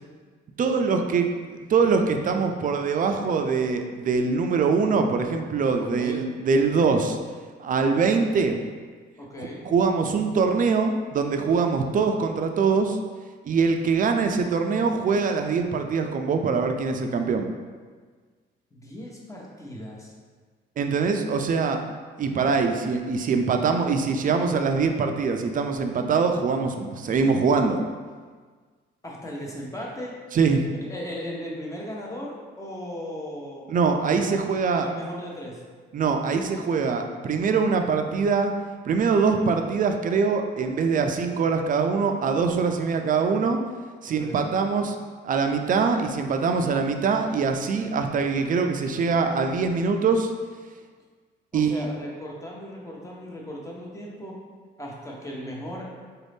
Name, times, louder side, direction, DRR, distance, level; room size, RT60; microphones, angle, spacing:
voice 1, 0.6-7.2 7.6-8.6 9.7-13.0 13.4-17.5 20.8-21.8 22.2-27.8 30.3-30.7 33.7-34.9 35.9-38.5 38.8-43.6 44.0-45.0 45.2-50.3 51.5-51.9, right 5 dB, 45° right, 5 dB, 0.4 m, -23 dB
voice 2, 5.8-6.2 9.2-9.6 18.7-20.1 29.0-30.2 30.8-33.7 34.7-35.6 44.2-44.5 51.5-54.4 54.8-55.9, equal, 15° left, -3 dB, 0.9 m, -37 dB
4.0 x 2.6 x 3.4 m, 1.5 s
cardioid pair, 90°, 20 cm